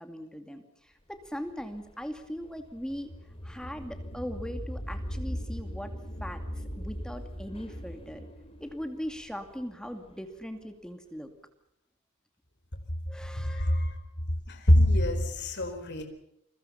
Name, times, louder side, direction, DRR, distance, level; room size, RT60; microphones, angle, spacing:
voice 1, 0.0-3.1 3.4-5.9 6.2-8.3 8.6-11.3 13.1-13.8, equal, 5° left, 6 dB, 2.4 m, -40 dB
sound 1, 1.3-10.2, equal, 25° left, 4.1 m, -39 dB
voice 2, 13.4-14.0 14.5-16.0, left 1 dB, 55° left, 6 dB, 4.5 m, -24 dB
29.5 x 23.0 x 5.8 m, 0.79 s
head